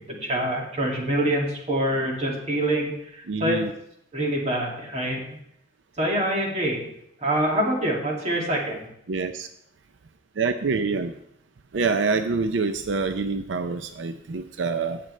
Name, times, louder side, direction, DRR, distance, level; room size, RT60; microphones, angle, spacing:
voice 1, 0.2-3.6 4.1-5.2 6.0-6.9 7.2-8.9, right 1 dB, 35° right, -1 dB, 2.3 m, -25 dB
voice 2, 3.3-3.7 9.1-9.5 10.4-11.1 11.7-15.0, right 4 dB, 90° right, 9 dB, 0.5 m, -26 dB
16.5 x 6.7 x 3.2 m, 0.73 s
head